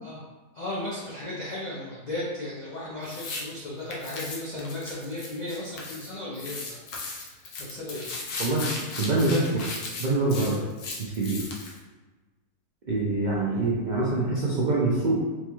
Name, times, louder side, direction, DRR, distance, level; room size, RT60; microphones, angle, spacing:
voice 1, 0.5-8.1 13.3-13.6, left 1 dB, 50° left, -7 dB, 0.5 m, -36 dB
sound 1, 3.0-3.4 3.9-6.1 6.4-11.8, left 3 dB, 75° left, 1.2 m, -36 dB
voice 2, 8.4-10.6 11.0-11.4 12.9-15.2, right 2 dB, 85° right, -6 dB, 0.4 m, -25 dB
4.5 x 2.3 x 3.0 m, 1.3 s
omnidirectional pair, 1.7 m